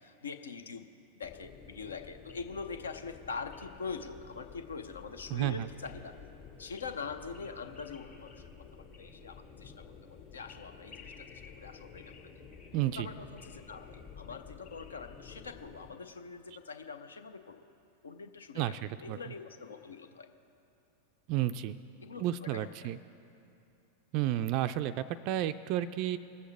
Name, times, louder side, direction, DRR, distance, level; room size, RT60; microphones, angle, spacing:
voice 1, 0.0-0.9 1.2-6.2 6.6-8.4 8.7-12.1 12.9-17.7 18.0-18.6 19.0-20.3 22.0-22.9, left 5 dB, 70° left, 9 dB, 0.7 m, -43 dB
sound 1, 1.2-15.9, left 6 dB, 45° left, 1.8 m, -51 dB
voice 2, 5.3-5.7 12.7-13.1 18.5-19.3 21.3-21.8 22.2-23.0 24.1-26.2, right 13 dB, 45° right, 11 dB, 0.3 m, -32 dB
21.0 x 8.0 x 3.4 m, 2.8 s
figure-of-eight pair, 90°, 0 cm